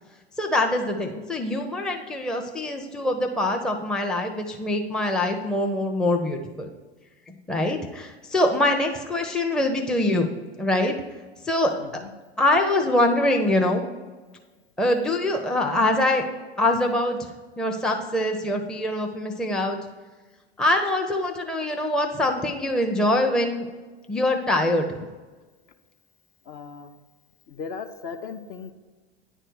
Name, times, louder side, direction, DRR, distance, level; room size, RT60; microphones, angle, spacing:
voice 1, 0.4-6.7 7.3-10.3 10.6-10.9 11.4-12.0 12.4-14.0 14.8-16.2 16.6-17.2 17.6-19.8 20.6-23.7 24.1-25.0, left 1 dB, ahead, 2 dB, 0.6 m, -24 dB
voice 2, 11.8-12.1 26.5-26.9 27.5-28.7, left 5 dB, 40° left, 7 dB, 0.7 m, -37 dB
9.8 x 3.3 x 6.2 m, 1.3 s
figure-of-eight pair, 90°, 32 cm